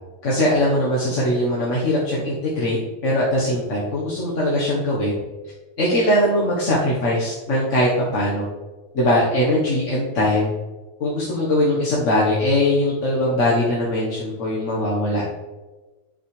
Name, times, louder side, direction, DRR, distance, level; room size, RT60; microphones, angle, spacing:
voice 1, 0.2-2.8 3.0-5.1 5.8-8.5 8.9-10.5 11.0-15.2, left 1 dB, 40° left, -6 dB, 1.5 m, -21 dB
10.0 x 6.2 x 3.3 m, 1.2 s
omnidirectional pair, 2.3 m